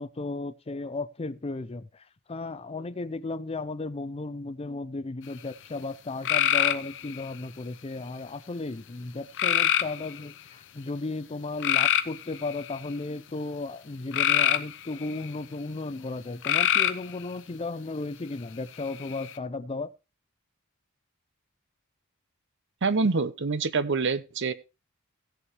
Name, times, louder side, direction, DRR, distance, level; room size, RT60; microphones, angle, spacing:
voice 1, 0.0-19.9, left 3 dB, 25° left, 0.5 m, -35 dB
sound 1, 6.2-7.3 9.4-10.2 11.6-12.9 14.1-15.3 16.4-17.1 18.8-19.3, left 10 dB, 55° left, 0.8 m, -25 dB
voice 2, 22.8-24.5, right 4 dB, 55° right, 0.8 m, -26 dB
17.0 x 7.0 x 3.1 m
head